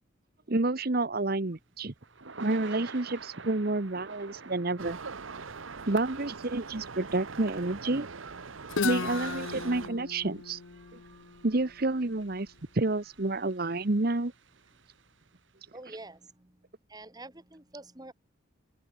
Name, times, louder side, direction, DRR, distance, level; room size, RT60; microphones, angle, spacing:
voice 1, 0.5-1.9 2.4-5.0 5.9-8.1 8.8-10.6 11.4-12.5 12.7-14.3, right 2 dB, 50° right, 1.1 m, -29 dB
Thunder / Rain, 1.2-15.5, right 4 dB, 70° right, 1.8 m, -50 dB
sound 1, 4.8-9.9, right 5 dB, 90° right, 1.2 m, -42 dB
Guitar, 8.7-12.5, left 5 dB, 80° left, 0.7 m, -36 dB
voice 2, 15.7-18.1, right 2 dB, 20° right, 1.9 m, -48 dB
open air
head